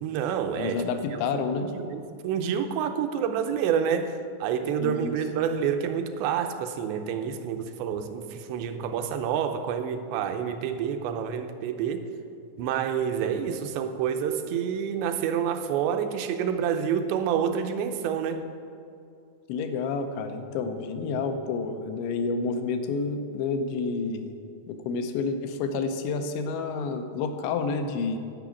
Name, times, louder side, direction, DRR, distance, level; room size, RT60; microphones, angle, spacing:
voice 1, 0.0-0.8 1.6-12.1 12.6-18.5, right 8 dB, 80° right, 2.8 m, -28 dB
voice 2, 0.6-1.7 4.8-5.2 19.5-24.3 24.7-28.2, left 4 dB, 85° left, 3.1 m, -29 dB
11.5 x 6.1 x 8.4 m
omnidirectional pair, 5.1 m